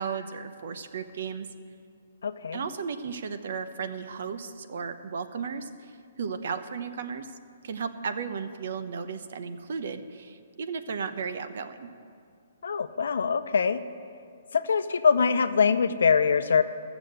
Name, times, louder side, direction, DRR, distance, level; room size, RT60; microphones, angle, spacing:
voice 1, 0.0-1.5 2.5-7.4 7.6-11.9, right 6 dB, 60° right, 10 dB, 0.8 m, -35 dB
voice 2, 2.2-2.6 12.6-13.8 14.5-16.6, left 6 dB, 80° left, 11 dB, 0.6 m, -23 dB
13.5 x 7.0 x 7.8 m, 2.3 s
hypercardioid pair, 160°, 0 cm